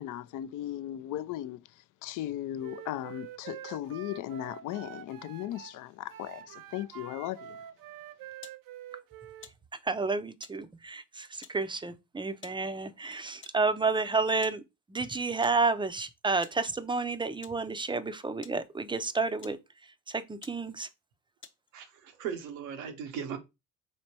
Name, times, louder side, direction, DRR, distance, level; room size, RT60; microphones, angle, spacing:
voice 1, 0.0-1.6 2.0-7.6, left 13 dB, 55° left, 0.4 m, -37 dB
Wind instrument woodwind instrument, 2.6-5.8 6.1-9.5, right 11 dB, 60° right, 0.5 m, -46 dB
sound 1, 8.4-8.6 9.4-9.6 10.4-10.6 11.4-11.6 12.4-12.6 13.4-13.6 14.4-14.6 15.4-15.6 16.4-16.6 17.4-17.6 18.4-18.6 19.4-19.6 20.1-20.2 20.4-20.6 21.4-21.8, left 6 dB, 30° left, 0.8 m, -51 dB
voice 2, 9.8-14.6 14.9-19.6 19.8-20.9, right 3 dB, 15° right, 0.5 m, -30 dB
voice 3, 21.7-23.4, right 7 dB, 85° right, 0.8 m, -38 dB
4.2 x 3.2 x 2.8 m
hypercardioid pair, 50°, 38 cm